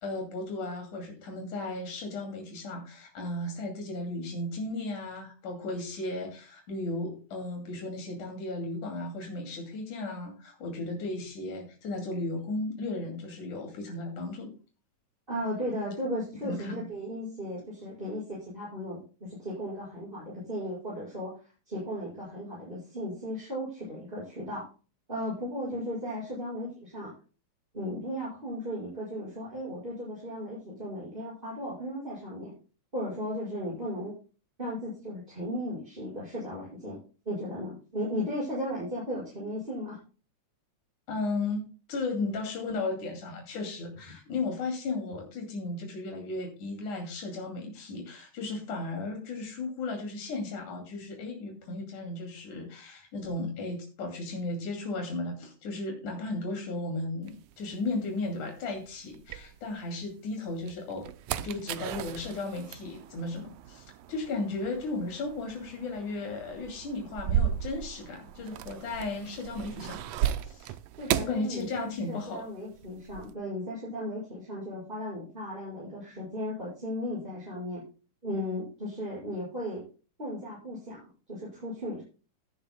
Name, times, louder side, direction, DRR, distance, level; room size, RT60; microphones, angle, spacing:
voice 1, 0.0-14.5 16.4-16.9 41.1-61.1 61.3-70.0 70.4-70.7 71.2-72.4, left 2 dB, 80° left, 2 dB, 4.0 m, -35 dB
voice 2, 15.3-21.4 21.7-24.7 25.1-27.1 27.7-32.5 32.9-34.1 34.6-37.0 37.3-40.0 71.0-77.8 78.2-79.8 80.2-82.0, equal, 15° right, -7 dB, 5.7 m, -36 dB
sound 1, 57.3-60.0 60.5-72.3 72.5-73.3, right 10 dB, 80° right, 1.6 m, -35 dB
17.0 x 10.5 x 2.2 m, 0.36 s
omnidirectional pair, 3.4 m